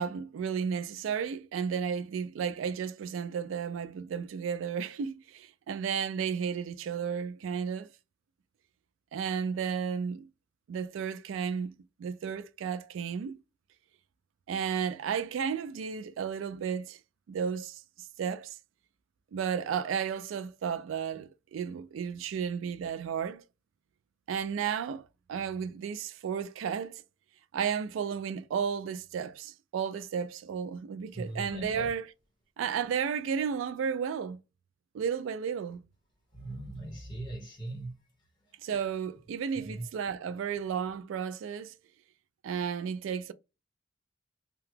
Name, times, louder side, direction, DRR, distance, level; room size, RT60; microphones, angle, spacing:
voice 1, 0.0-7.9 9.1-10.3 10.7-11.7 12.0-13.4 14.5-17.0 17.3-17.8 18.2-18.6 19.3-23.4 24.3-27.0 27.5-32.1 32.6-34.4 34.9-35.8 38.6-41.7 42.4-43.3, right 7 dB, 75° right, 0.3 m, -33 dB
voice 2, 31.1-31.9 36.3-37.9 39.5-39.8, right 1 dB, 25° left, 1.6 m, -39 dB
2.8 x 2.2 x 3.2 m
head